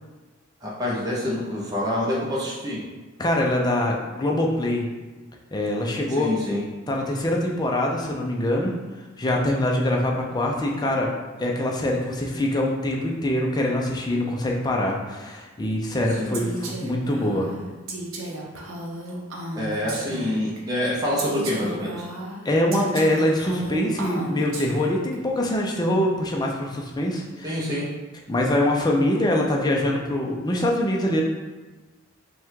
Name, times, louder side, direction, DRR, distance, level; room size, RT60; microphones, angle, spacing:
voice 1, 0.6-2.8 6.2-6.6 16.2-16.4 19.5-21.9 27.4-27.9, left 1 dB, 20° right, -6 dB, 0.7 m, -26 dB
voice 2, 3.2-4.9 5.5-6.3 6.9-8.7 9.2-11.1 11.4-17.5 22.4-27.6 28.3-31.2, left 1 dB, 20° left, -1 dB, 0.5 m, -24 dB
Female speech woman speaking, 16.3-20.6 21.2-25.2, right 1 dB, 80° right, 0.7 m, -34 dB
5.4 x 2.3 x 3.7 m, 1.2 s
head